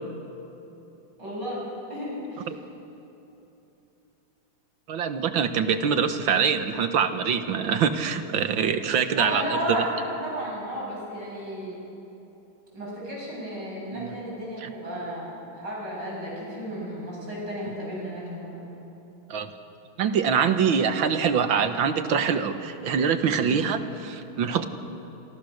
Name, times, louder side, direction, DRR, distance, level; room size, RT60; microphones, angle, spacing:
voice 1, 1.2-1.6 1.9-2.5 9.2-11.8 12.7-18.7 23.4-23.6, equal, 60° right, -4 dB, 8.7 m, -33 dB
voice 2, 4.9-9.4 13.9-14.1 14.6-14.7 19.3-19.5 20.0-24.6, right 7 dB, 75° right, 9 dB, 2.0 m, -24 dB
27.0 x 26.5 x 6.6 m, 3.0 s
omnidirectional pair, 2.2 m